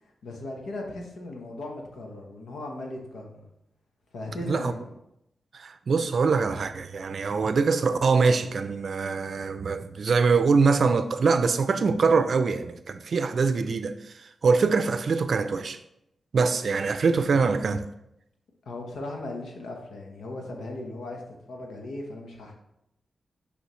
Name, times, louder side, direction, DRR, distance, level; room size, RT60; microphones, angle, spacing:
voice 1, 0.2-3.5 4.1-4.9 18.6-22.5, left 2 dB, 90° left, 1.2 m, -37 dB
voice 2, 5.5-14.1 14.4-15.8 16.3-17.9, right 4 dB, 60° right, 0.5 m, -23 dB
6.7 x 5.0 x 3.1 m
wide cardioid pair, 95°, 0 cm